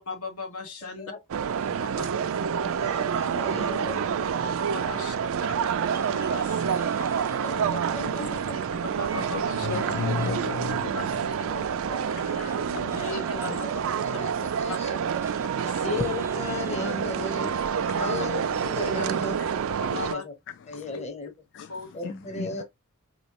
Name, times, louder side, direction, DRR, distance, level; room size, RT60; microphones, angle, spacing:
voice 1, 0.1-1.1 2.0-2.1 2.3-2.5 4.7-5.2 5.4-6.8 8.2-9.7 10.9-11.7 12.8-13.7 14.7-14.8 15.6-16.0 18.0-18.2 18.9-19.1 19.8-20.2 20.9-21.0 21.7-21.9, left 3 dB, 80° left, 1.3 m, -38 dB
sound 1, 1.3-20.1, right 7 dB, 65° right, 0.4 m, -28 dB
voice 2, 1.5-2.0 2.6-4.3 4.8-5.1 5.3-5.4 7.4-8.6 10.1-10.2 11.4-12.6 13.3-15.0 15.3-15.4 15.8-17.5 17.9-19.3 19.9-20.3 20.7-21.3 21.9-22.6, left 3 dB, 30° left, 0.9 m, -36 dB
sound 2, 5.9-8.5 8.8-19.1, right 2 dB, 10° right, 0.5 m, -46 dB
voice 3, 6.8-7.8 9.1-11.3 12.2-13.2 13.5-13.6 16.7-16.8 17.8-18.0 19.4-19.5 20.5-21.0 21.5-22.6, left 6 dB, 55° left, 0.3 m, -36 dB
4.4 x 3.0 x 2.9 m
head